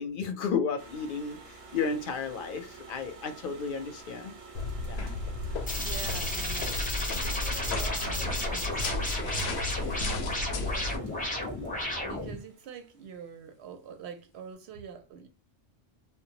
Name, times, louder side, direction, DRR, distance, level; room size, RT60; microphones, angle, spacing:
voice 1, 0.0-4.3 4.9-5.1, left 5 dB, 60° left, 0.6 m, -33 dB
sound 1, 0.8-12.8, right 4 dB, 45° right, 0.5 m, -49 dB
sound 2, 4.5-11.0, left 3 dB, 90° left, 0.9 m, -34 dB
sound 3, 5.7-12.4, left 1 dB, 10° left, 0.5 m, -33 dB
voice 2, 5.7-10.3 10.7-10.9 12.0-15.3, right 7 dB, 90° right, 0.9 m, -46 dB
2.2 x 2.0 x 2.7 m
omnidirectional pair, 1.1 m